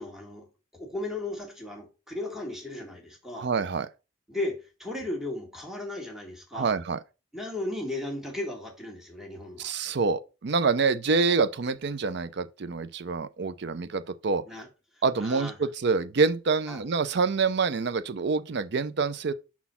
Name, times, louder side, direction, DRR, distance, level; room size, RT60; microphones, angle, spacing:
voice 1, 0.0-3.5 4.3-6.7 7.3-9.7 14.4-14.7 15.2-15.6 16.7-16.8, left 2 dB, ahead, 1.7 m, -36 dB
voice 2, 3.3-3.9 6.5-7.0 9.6-14.4 15.0-19.3, right 4 dB, 55° right, 0.5 m, -26 dB
5.8 x 4.2 x 5.5 m
head